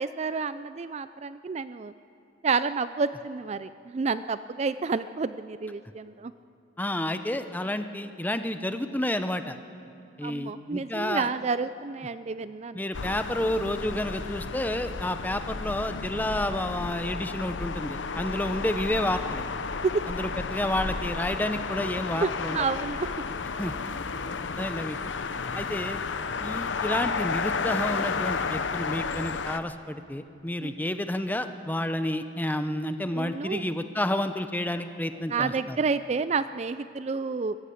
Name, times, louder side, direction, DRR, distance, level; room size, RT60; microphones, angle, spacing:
voice 1, 0.0-1.9 2.4-6.3 10.2-12.8 19.8-19.9 22.2-23.1 30.6-30.7 33.1-33.6 35.3-37.6, right 4 dB, 35° right, 14 dB, 0.4 m, -30 dB
voice 2, 6.8-9.6 10.2-11.3 12.7-19.4 20.1-22.7 23.6-23.7 24.6-25.1 25.5-26.0 26.4-35.8, left 1 dB, 10° left, 9 dB, 0.7 m, -30 dB
sound 1, 12.9-29.6, left 4 dB, 85° left, 0.8 m, -32 dB
22.0 x 14.0 x 8.4 m, 2.6 s
head